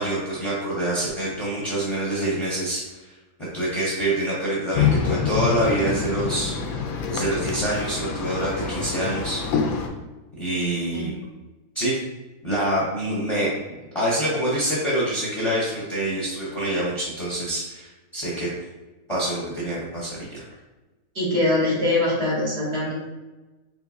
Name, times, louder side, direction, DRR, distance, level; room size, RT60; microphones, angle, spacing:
voice 1, 0.0-2.8 3.4-6.5 7.1-9.4 10.4-11.2 11.7-12.0 12.4-13.5 13.9-18.5 19.1-20.4, right 1 dB, 25° left, -7 dB, 0.8 m, -26 dB
sound 1, 4.7-9.9, left 6 dB, 80° left, 1.0 m, -26 dB
voice 2, 21.1-22.9, left 2 dB, 45° right, -6 dB, 1.4 m, -23 dB
4.6 x 3.3 x 2.5 m, 1.1 s
omnidirectional pair, 1.5 m